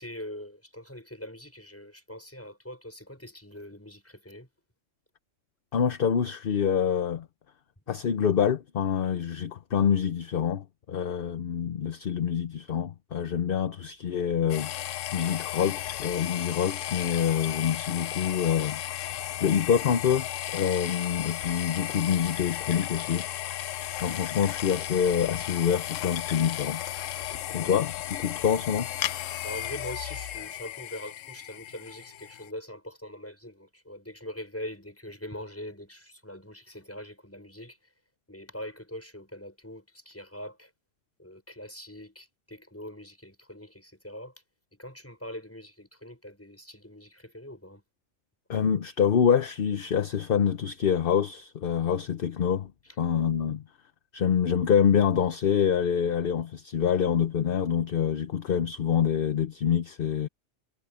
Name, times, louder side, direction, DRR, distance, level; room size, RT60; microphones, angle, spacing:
voice 1, 0.0-4.5 27.1-27.7 29.4-37.9 38.3-40.7 41.2-44.3 44.7-47.8, left 1 dB, 10° left, 6.3 m, -42 dB
voice 2, 5.7-7.3 7.9-23.3 24.0-26.8 27.5-28.9 48.5-52.7 53.0-53.6 54.1-60.3, left 8 dB, 50° left, 0.9 m, -26 dB
sound 1, 14.5-32.5, left 12 dB, 80° left, 1.0 m, -35 dB
omnidirectional pair, 1.3 m